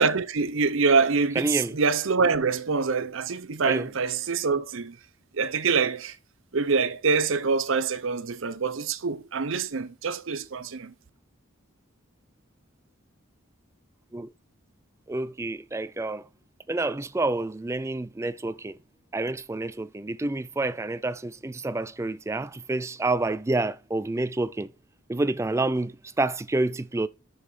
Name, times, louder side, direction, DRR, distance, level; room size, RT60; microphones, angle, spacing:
voice 1, 0.0-5.0 5.3-6.2 6.5-10.9, right 4 dB, 70° right, 0.7 m, -25 dB
voice 2, 1.4-1.8 3.6-3.9 14.1-14.3 15.1-16.3 16.7-18.8 19.1-24.7 25.1-27.1, right 2 dB, 15° right, 0.3 m, -28 dB
6.4 x 5.6 x 4.8 m
head